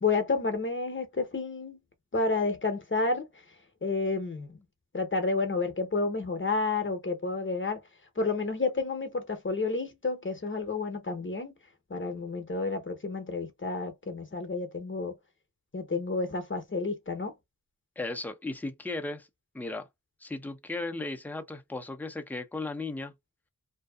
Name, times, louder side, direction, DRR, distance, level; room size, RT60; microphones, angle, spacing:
voice 1, 0.0-1.8 2.1-3.2 3.8-4.6 4.9-7.8 8.2-11.5 11.9-15.1 15.7-17.3, left 3 dB, 35° left, 0.8 m, -30 dB
voice 2, 18.0-19.3 19.5-19.9 20.2-23.1, left 2 dB, 5° left, 0.6 m, -36 dB
2.7 x 2.2 x 2.3 m
wide cardioid pair, 60°, 34 cm